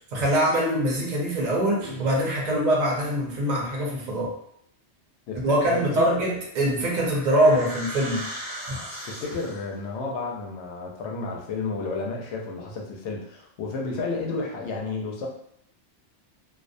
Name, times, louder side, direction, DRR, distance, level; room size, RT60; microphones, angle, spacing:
voice 1, 0.0-4.3 5.3-8.2 8.7-8.8, right 1 dB, 50° right, -3 dB, 0.6 m, -23 dB
Guitar, 1.8-3.5, right 6 dB, 90° right, 0.9 m, -40 dB
voice 2, 5.3-6.2 9.0-15.3, left 3 dB, 80° left, -1 dB, 0.9 m, -32 dB
sound 1, 6.4-9.8, equal, 10° left, 0.7 m, -38 dB
2.3 x 2.1 x 2.5 m, 0.71 s
omnidirectional pair, 1.1 m